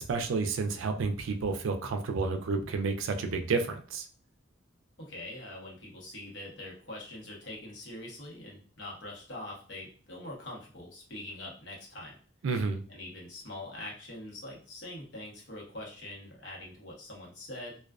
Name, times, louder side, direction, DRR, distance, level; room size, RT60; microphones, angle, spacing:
voice 1, 0.0-4.1 12.4-12.8, right 4 dB, 75° right, 0.4 m, -30 dB
voice 2, 5.0-12.2 12.9-17.8, left 1 dB, 65° left, 0.9 m, -43 dB
2.3 x 2.3 x 2.3 m
head